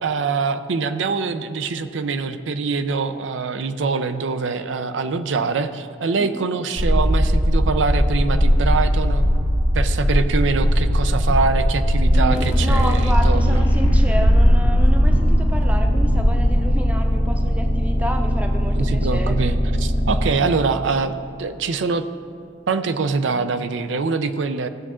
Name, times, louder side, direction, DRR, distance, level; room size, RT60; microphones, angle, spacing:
voice 1, 0.0-9.2 9.7-13.7 18.7-22.0 22.7-24.7, right 4 dB, 85° right, 10 dB, 0.5 m, -24 dB
sound 1, 6.8-16.7, equal, 50° right, 1.2 m, -18 dB
voice 2, 12.1-19.4, equal, 5° right, 4 dB, 0.6 m, -30 dB
sound 2, 12.3-20.3, equal, 80° left, 1.8 m, -21 dB
16.0 x 7.3 x 3.7 m, 2.4 s
head